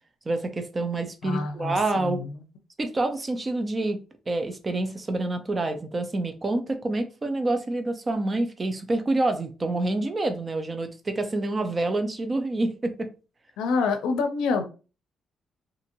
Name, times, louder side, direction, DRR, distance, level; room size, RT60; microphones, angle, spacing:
voice 1, 0.3-2.2 2.8-13.1, right 2 dB, 30° right, 7 dB, 0.6 m, -27 dB
voice 2, 1.2-2.4 13.6-14.6, left 4 dB, 90° left, 7 dB, 0.5 m, -27 dB
2.8 x 2.6 x 2.7 m, 0.33 s
cardioid pair, 90°, 0 cm